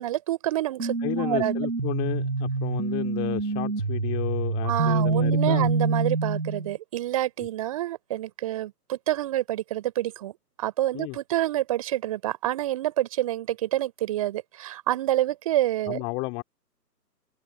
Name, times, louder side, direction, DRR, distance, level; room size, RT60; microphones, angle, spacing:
voice 1, 0.0-1.6 4.6-16.0, right 14 dB, 20° right, 4.4 m, -28 dB
sound 1, 0.8-6.7, right 3 dB, 60° right, 5.1 m, -26 dB
voice 2, 1.0-5.7 10.9-11.2 15.9-16.4, left 30 dB, 10° left, 2.3 m, -32 dB
figure-of-eight pair, 145°, 49 cm